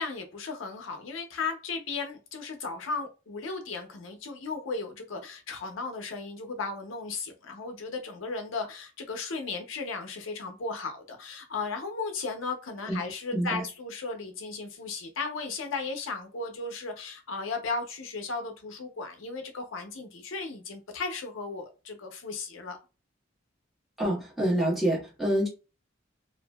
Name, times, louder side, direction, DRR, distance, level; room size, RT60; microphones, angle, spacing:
voice 1, 0.0-22.8, left 4 dB, 80° left, 0.6 m, -35 dB
voice 2, 24.0-25.5, right 1 dB, ahead, 1.3 m, -27 dB
2.7 x 2.5 x 2.2 m
head